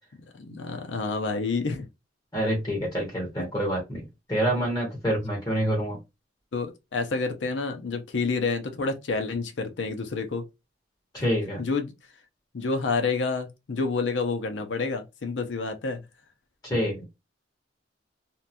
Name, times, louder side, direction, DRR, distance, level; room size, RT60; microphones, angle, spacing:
voice 1, 0.3-1.9 6.5-10.4 11.6-11.9 12.5-16.0, left 4 dB, 90° left, 0.6 m, -29 dB
voice 2, 2.3-6.0 11.1-11.6 16.6-17.1, equal, 20° left, 1.2 m, -27 dB
2.8 x 2.3 x 2.5 m
head